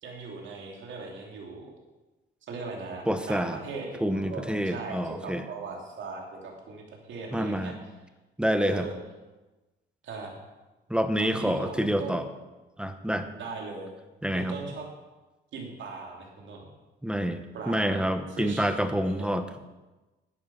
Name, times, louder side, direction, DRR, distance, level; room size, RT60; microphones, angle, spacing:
voice 1, 0.0-1.7 2.4-7.7 8.5-8.9 10.0-10.3 11.2-12.1 13.4-13.9 14.3-14.9 15.5-16.6 17.5-18.0 18.3-18.6 19.0-19.3, right 4 dB, 70° right, 0 dB, 3.2 m, -39 dB
voice 2, 3.1-3.6 4.0-5.4 7.3-7.7 8.4-8.9 10.9-12.3 12.8-13.3 14.2-14.6 17.0-19.4, equal, 5° right, 9 dB, 1.0 m, -27 dB
10.5 x 9.3 x 5.8 m, 1.1 s
cardioid pair, 90°, 20 cm